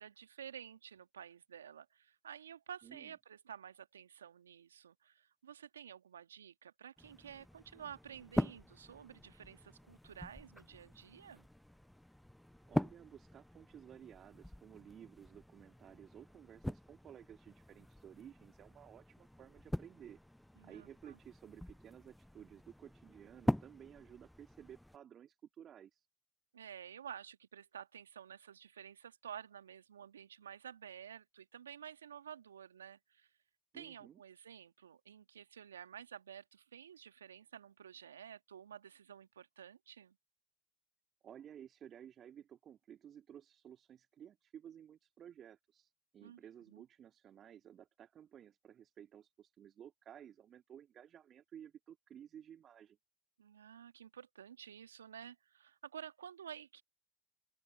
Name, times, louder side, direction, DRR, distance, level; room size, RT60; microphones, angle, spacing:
voice 1, 0.0-11.5 20.6-21.2 26.5-33.3 33.7-40.2 46.2-46.4 46.7-46.8 53.4-56.8, right 8 dB, 85° right, 1.6 m, -52 dB
voice 2, 2.8-3.1 12.7-20.2 20.6-26.1 33.7-34.2 41.2-53.0, right 9 dB, 40° right, 2.0 m, -55 dB
sound 1, 7.0-25.0, left 1 dB, 5° left, 0.5 m, -43 dB
open air
hypercardioid pair, 75°, 0 cm